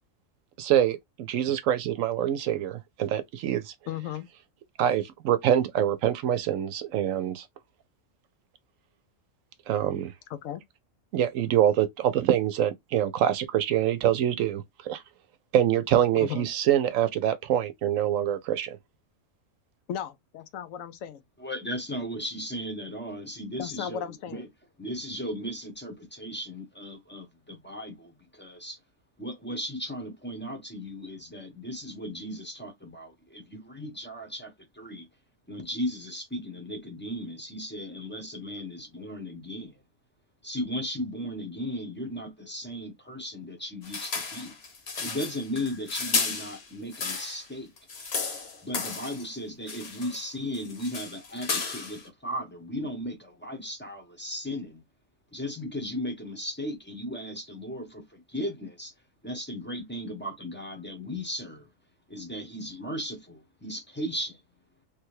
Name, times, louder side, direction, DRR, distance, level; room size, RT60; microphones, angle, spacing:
voice 1, 0.6-3.7 4.8-7.4 9.7-10.1 11.1-15.0 15.5-18.8, right 11 dB, 85° right, 1.0 m, -25 dB
voice 2, 3.9-4.3 10.3-10.6 16.2-16.5 19.9-21.2 23.6-24.4, left 9 dB, 80° left, 1.0 m, -35 dB
voice 3, 21.4-24.5 24.8-28.8 29.2-35.1 35.5-39.7 40.4-44.5 45.0-47.7 48.6-54.8 55.3-58.9 59.2-61.7 62.1-64.4, equal, 10° left, 0.6 m, -36 dB
sound 1, 43.8-47.5 47.8-49.3 49.7-50.3 50.5-52.1, left 4 dB, 55° left, 1.1 m, -33 dB
3.3 x 2.2 x 3.1 m
omnidirectional pair, 1.4 m